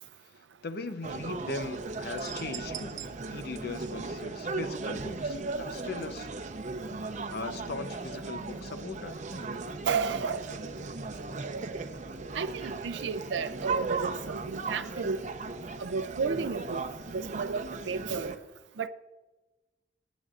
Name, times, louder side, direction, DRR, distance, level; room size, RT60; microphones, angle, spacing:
voice 1, 0.2-6.3 7.3-9.2, left 3 dB, 60° left, 0.7 m, -39 dB
sound 1, 1.0-18.4, right 3 dB, 40° right, 0.8 m, -37 dB
voice 2, 9.9-10.5 11.4-11.7 12.2-15.2 15.8-18.3 18.8-18.9, right 5 dB, 85° right, 0.5 m, -33 dB
19.5 x 9.2 x 2.5 m
head